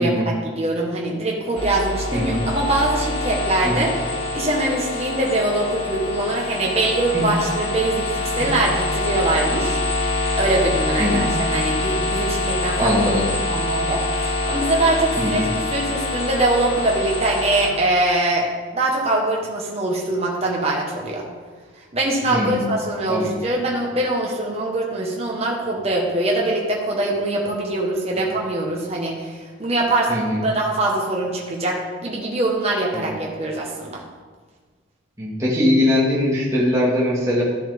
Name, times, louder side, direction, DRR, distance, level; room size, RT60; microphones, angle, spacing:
voice 1, 0.4-3.9 4.3-9.8 10.4-12.8 13.5-18.4 18.7-21.2 21.9-34.0, right 2 dB, 30° right, -2 dB, 1.3 m, -23 dB
sound 1, 1.5-17.7, left 2 dB, 30° left, 1.7 m, -25 dB
voice 2, 2.1-2.5 3.6-3.9 7.1-7.2 8.4-8.5 11.0-11.4 12.8-13.3 15.2-15.5 22.3-22.7 23.1-23.4 30.1-30.4 32.9-33.0 35.2-37.4, left 1 dB, 15° right, -7 dB, 1.9 m, -21 dB
13.0 x 7.2 x 3.6 m, 1.4 s
head